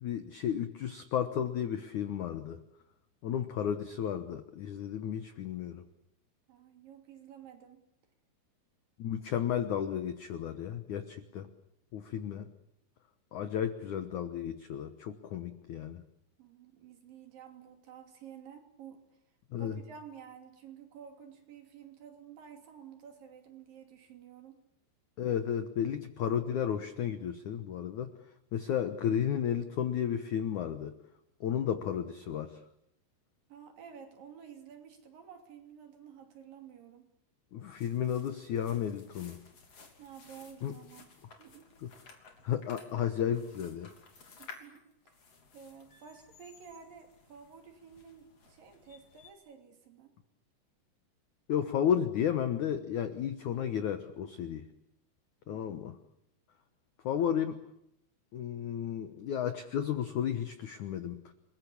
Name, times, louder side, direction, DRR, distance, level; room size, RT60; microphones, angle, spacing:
voice 1, 0.0-2.6 3.2-5.8 9.0-11.5 11.9-12.5 13.3-16.0 19.5-19.8 25.2-28.1 28.5-30.9 31.4-32.6 37.5-39.4 40.6-40.7 41.8-41.9 42.4-43.9 51.5-54.6 55.5-56.0 57.0-57.7 58.3-61.3, left 9 dB, 70° left, 10 dB, 1.8 m, -33 dB
voice 2, 6.5-7.9 16.4-19.0 19.6-24.6 33.5-37.1 40.0-41.1 41.4-42.1 44.4-45.1 45.5-50.1 55.5-55.8, right 7 dB, 55° right, 5 dB, 4.3 m, -52 dB
sound 1, 37.6-49.3, left 4 dB, 40° left, 3.8 m, -56 dB
30.0 x 21.0 x 8.6 m, 0.78 s
omnidirectional pair, 5.2 m